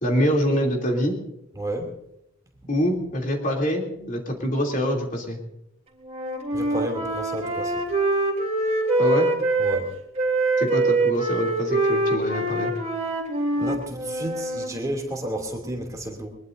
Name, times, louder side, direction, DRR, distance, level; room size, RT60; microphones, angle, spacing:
voice 1, 0.0-1.2 2.7-5.4 9.0-9.3 10.6-12.7, equal, 40° left, 1 dB, 3.1 m, -25 dB
voice 2, 1.6-1.9 6.5-7.7 9.6-9.9 13.6-16.3, right 1 dB, 15° right, 2 dB, 2.8 m, -31 dB
Wind instrument woodwind instrument, 6.0-9.8 10.2-14.7, right 2 dB, 30° right, 3.4 m, -24 dB
22.5 x 21.5 x 2.7 m, 0.82 s
head